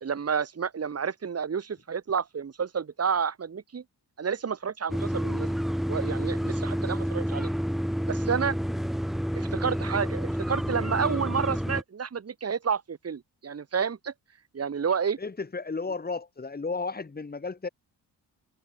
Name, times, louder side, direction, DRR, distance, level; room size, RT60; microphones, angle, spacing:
voice 1, 0.0-3.8 4.2-5.6 5.9-7.5 8.1-8.6 9.4-14.1 14.5-15.2, right 6 dB, 35° right, 2.8 m, -30 dB
sound 1, 4.9-11.8, equal, ahead, 0.7 m, -29 dB
voice 2, 15.2-17.7, left 4 dB, 25° left, 3.7 m, -33 dB
wide cardioid pair, 150°, 40 cm